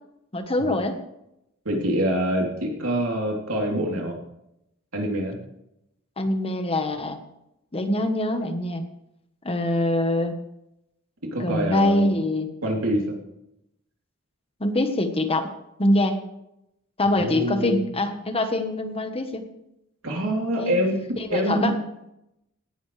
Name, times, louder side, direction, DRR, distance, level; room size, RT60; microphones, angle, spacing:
voice 1, 0.3-1.0 6.2-7.2 7.7-8.8 9.4-10.3 11.4-12.5 14.6-15.5 15.8-16.2 17.0-19.4 20.6-20.8 21.2-21.7, left 1 dB, 30° left, 7 dB, 1.2 m, -24 dB
voice 2, 1.6-4.2 4.9-5.4 11.3-12.1 12.6-13.2 17.1-17.8 20.0-21.0 21.3-21.7, right 1 dB, 80° right, -1 dB, 3.4 m, -25 dB
17.5 x 11.5 x 3.3 m, 0.84 s
head